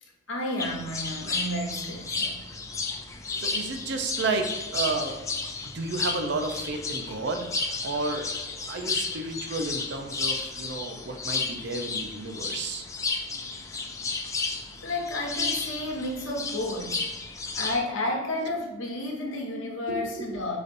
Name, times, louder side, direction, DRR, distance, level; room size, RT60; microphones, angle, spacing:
voice 1, 0.0-2.4 14.8-17.0 17.5-20.6, left 1 dB, 80° left, -1 dB, 1.2 m, -31 dB
sound 1, 0.6-17.8, left 3 dB, 15° left, 0.4 m, -33 dB
voice 2, 3.4-5.2 5.7-8.3 8.7-12.9 19.9-20.4, right 3 dB, 60° right, 4 dB, 0.6 m, -32 dB
5.0 x 4.0 x 2.6 m, 1.1 s
head